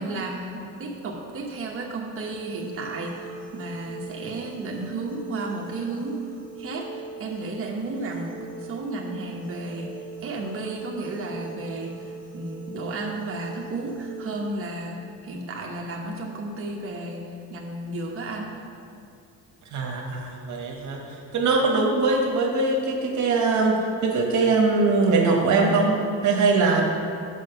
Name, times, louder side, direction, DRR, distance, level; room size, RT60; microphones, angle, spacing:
voice 1, 0.0-3.3 3.5-6.2 6.6-9.9 10.2-17.2 17.5-18.5, right 2 dB, 45° right, -1 dB, 1.1 m, -33 dB
sound 1, 2.2-14.6, right 5 dB, 40° left, 1.8 m, -41 dB
voice 2, 19.7-21.0 21.3-23.8 24.0-26.0 26.2-26.8, right 3 dB, 70° right, 0 dB, 1.2 m, -21 dB
6.4 x 5.4 x 6.7 m, 2.4 s
cardioid pair, 90°, 30 cm